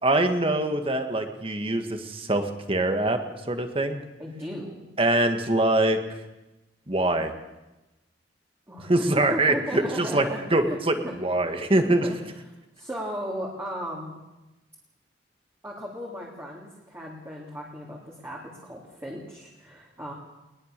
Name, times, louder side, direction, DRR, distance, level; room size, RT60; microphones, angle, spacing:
voice 1, 0.0-3.2 3.5-4.0 5.0-6.0 6.9-7.3 8.8-12.1, right 2 dB, 30° right, 6 dB, 1.9 m, -24 dB
voice 2, 4.2-4.8 8.7-9.1 9.3-10.8 11.0-11.1 12.0-12.2 12.7-14.2 15.6-20.1, equal, 15° right, -3 dB, 3.1 m, -36 dB
21.5 x 20.5 x 6.8 m, 1.0 s
head